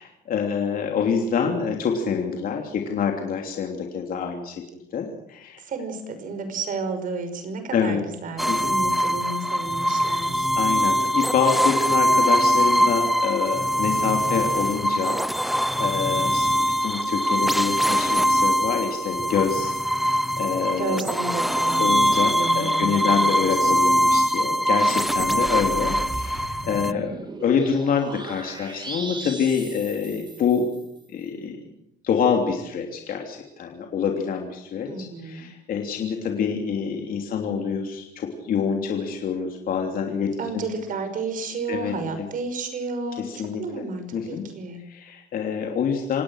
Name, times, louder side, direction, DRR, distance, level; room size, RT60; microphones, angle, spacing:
voice 1, 0.0-5.6 7.7-8.0 8.5-8.8 10.5-21.0 21.8-27.1 27.4-30.7 31.1-31.6 32.0-40.7 41.7-41.9 43.3-43.8 44.1-44.4 44.9-46.2, left 6 dB, 55° left, 2 dB, 3.2 m, -26 dB
voice 2, 5.6-10.5 20.7-23.7 34.9-35.5 40.4-44.8, right 4 dB, 55° right, 8 dB, 5.7 m, -32 dB
sound 1, 8.4-26.9, equal, ahead, 0.8 m, -22 dB
sound 2, 25.1-30.9, right 2 dB, 25° right, 3.2 m, -37 dB
27.0 x 17.5 x 6.5 m, 0.79 s
cardioid pair, 110°, 17 cm